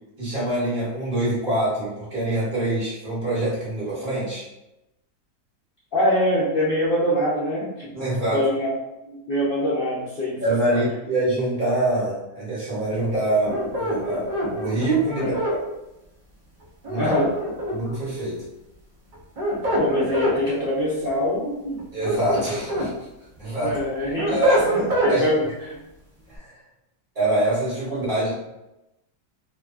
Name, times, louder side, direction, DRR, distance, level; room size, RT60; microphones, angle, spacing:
voice 1, 0.2-4.4 7.9-8.4 10.4-15.6 16.9-17.0 17.7-18.4 21.9-22.9 23.4-23.8 24.3-24.8 25.1-25.3 26.3-26.5 27.1-28.3, right 1 dB, 35° right, -9 dB, 1.0 m, -25 dB
voice 2, 5.9-8.7 9.1-10.4 10.7-10.9 15.2-15.3 16.9-17.3 19.8-21.8 23.6-24.4 24.7-25.8, left 1 dB, 65° left, -9 dB, 0.5 m, -24 dB
sound 1, 13.5-15.6 16.8-18.0 19.1-20.4 21.8-22.9 23.4-25.2, equal, 55° right, 0.5 m, -25 dB
2.7 x 2.2 x 2.4 m, 0.93 s
omnidirectional pair, 1.7 m